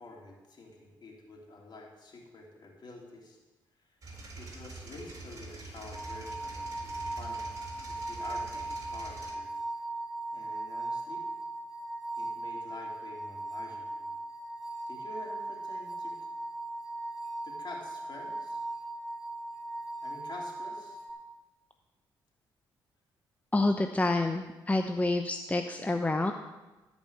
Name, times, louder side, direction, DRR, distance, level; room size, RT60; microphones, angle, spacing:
voice 1, 0.0-3.4 3.8-4.0 4.3-7.4 7.9-9.5 10.3-11.3 12.2-14.2 14.9-16.2 17.4-18.6 20.0-21.0, left 2 dB, 50° left, -1 dB, 3.2 m, -48 dB
sound 1, 4.0-9.3, right 3 dB, 35° right, 3.7 m, -45 dB
sound 2, 5.9-21.1, right 2 dB, 10° right, 2.3 m, -38 dB
voice 2, 23.5-26.3, left 2 dB, 15° left, 5 dB, 0.8 m, -28 dB
13.5 x 5.3 x 6.8 m, 1.1 s
supercardioid pair, 55°, 9 cm